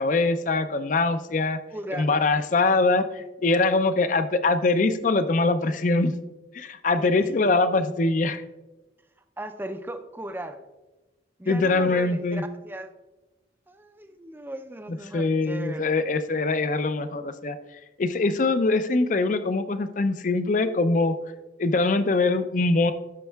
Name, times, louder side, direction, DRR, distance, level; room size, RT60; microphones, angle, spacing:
voice 1, 0.0-1.6 1.9-6.2 6.5-8.4 11.5-12.4 15.1-17.6 18.0-21.2 21.6-22.9, left 3 dB, 45° left, 11 dB, 0.4 m, -23 dB
voice 2, 1.7-2.1 2.3-2.5 7.0-7.1 9.4-10.6 11.4-12.9 13.7-15.8, right 1 dB, 10° right, 7 dB, 0.4 m, -37 dB
12.0 x 6.3 x 2.3 m, 1.1 s
head